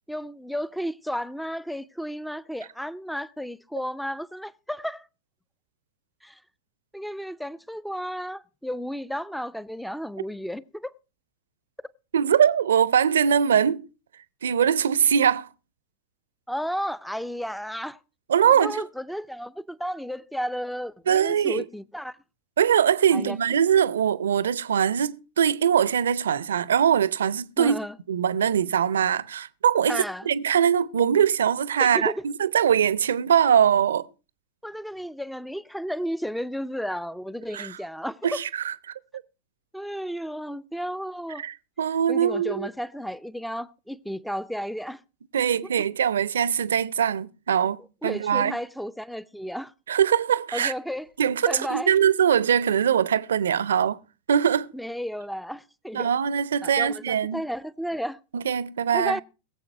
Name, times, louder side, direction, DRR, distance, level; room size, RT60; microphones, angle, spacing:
voice 1, 0.1-5.1 6.2-6.4 6.9-10.9 16.5-18.0 18.4-22.2 23.1-23.4 27.6-28.0 29.9-30.3 31.8-32.2 34.6-38.4 39.7-41.5 42.1-45.0 48.0-49.7 50.5-51.1 51.5-51.9 54.7-56.1 56.6-58.2 58.9-59.2, equal, ahead, 0.6 m, -33 dB
voice 2, 12.1-13.8 14.4-15.5 18.3-18.8 21.1-21.6 22.6-27.8 28.1-34.1 37.5-37.7 38.2-38.7 41.4-42.7 45.3-48.6 49.9-50.7 51.2-54.0 54.3-54.7 55.9-57.4 58.3-59.2, right 8 dB, 65° right, 0.7 m, -22 dB
21.0 x 7.7 x 4.5 m
figure-of-eight pair, 90°, 0 cm